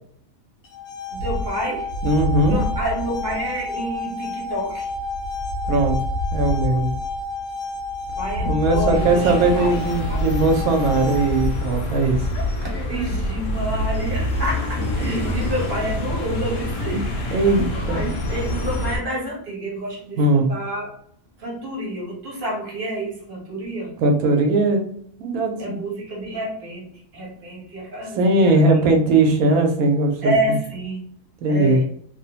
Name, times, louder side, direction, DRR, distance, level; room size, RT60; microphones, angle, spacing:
sound 1, 0.6-11.6, left 2 dB, 60° left, 0.9 m, -31 dB
voice 1, 1.1-1.9 2.5-4.9 8.2-9.8 10.1-10.2 12.6-17.0 17.8-20.9 21.4-23.9 25.6-28.8 30.2-31.0 31.5-31.8, equal, 40° right, -3 dB, 1.2 m, -29 dB
sound 2, 1.1-16.0, left 2 dB, 65° right, 0.9 m, -29 dB
voice 2, 2.0-2.6 5.7-6.0 6.3-6.9 8.4-12.2 17.3-18.1 20.2-20.4 24.0-24.9 25.2-25.8 28.2-30.6 31.4-31.8, right 2 dB, 90° right, 3 dB, 1.1 m, -19 dB
sound 3, 8.9-19.0, left 1 dB, 90° left, 1.1 m, -27 dB
2.9 x 2.0 x 2.8 m, 0.63 s
omnidirectional pair, 1.5 m